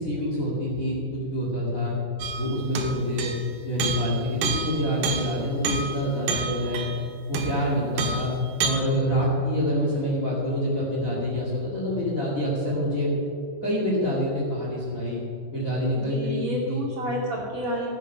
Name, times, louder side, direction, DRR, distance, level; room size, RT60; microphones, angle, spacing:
voice 1, 0.0-1.9 2.4-3.3 3.6-6.9 7.3-8.3 8.6-13.1 13.6-15.2 15.5-16.4 16.7-16.8, equal, 30° left, -4 dB, 2.0 m, -26 dB
sound 1, 2.2-3.5 3.8-7.7 8.0-8.7, right 4 dB, 90° right, 3.0 m, -30 dB
voice 2, 15.9-17.9, equal, 40° right, -4 dB, 3.3 m, -30 dB
16.0 x 9.2 x 5.4 m, 2.5 s
omnidirectional pair, 4.0 m